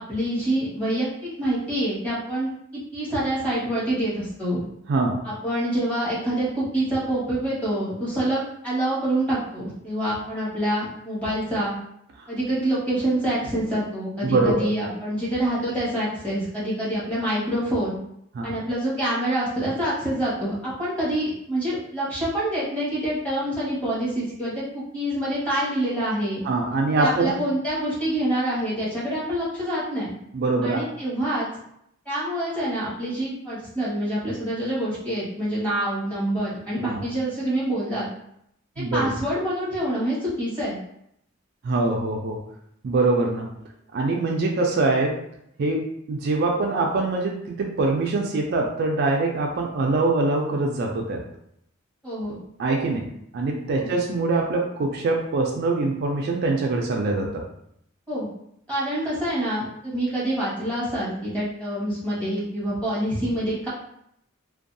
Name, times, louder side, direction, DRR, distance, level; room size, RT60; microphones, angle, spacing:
voice 1, 0.0-4.6 5.2-11.8 12.3-18.0 18.4-26.4 27.0-30.1 30.6-31.5 32.0-38.1 38.7-40.8 52.0-52.4 53.8-53.9 58.1-58.3 58.7-63.7, right 1 dB, 5° left, -10 dB, 1.2 m, -26 dB
voice 2, 4.9-5.2 14.2-14.5 18.3-18.5 26.4-27.3 30.3-30.8 36.9-37.0 38.8-39.1 41.6-42.4 42.8-43.5 43.9-45.2 45.6-51.2 52.6-53.1 53.3-57.4, right 3 dB, 55° right, 0 dB, 0.3 m, -23 dB
2.6 x 2.2 x 2.6 m, 0.74 s
head